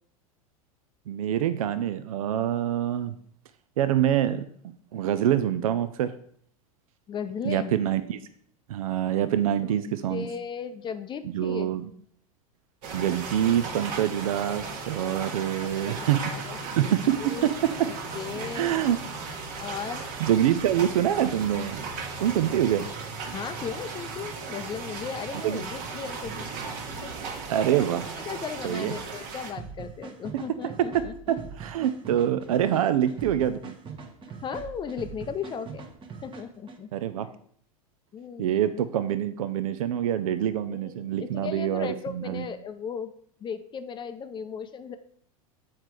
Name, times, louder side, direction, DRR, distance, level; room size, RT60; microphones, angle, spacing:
voice 1, 1.1-3.1 3.8-4.4 4.9-6.1 7.4-8.2 8.7-10.3 11.3-11.9 12.9-17.3 18.5-19.0 20.2-21.8 22.2-22.9 25.4-25.6 27.5-28.0 28.6-29.0 30.6-30.7 31.3-33.7 36.9-37.3 38.4-42.5, right 10 dB, 70° right, 12 dB, 0.5 m, -25 dB
voice 2, 7.1-7.8 10.1-11.7 15.6-16.6 16.8-17.5 17.9-18.7 19.6-20.0 23.3-26.5 26.9-27.3 27.8-27.9 28.3-31.1 34.4-35.9 36.2-36.9 37.2-37.3 38.1-38.5 40.7-43.1 43.4-45.0, left 7 dB, 25° left, 10 dB, 0.5 m, -36 dB
sound 1, 12.8-29.5, right 4 dB, 50° right, 1.3 m, -36 dB
sound 2, 29.6-36.8, right 5 dB, 25° right, 1.0 m, -42 dB
7.3 x 4.6 x 4.6 m, 0.62 s
hypercardioid pair, 90°, 19 cm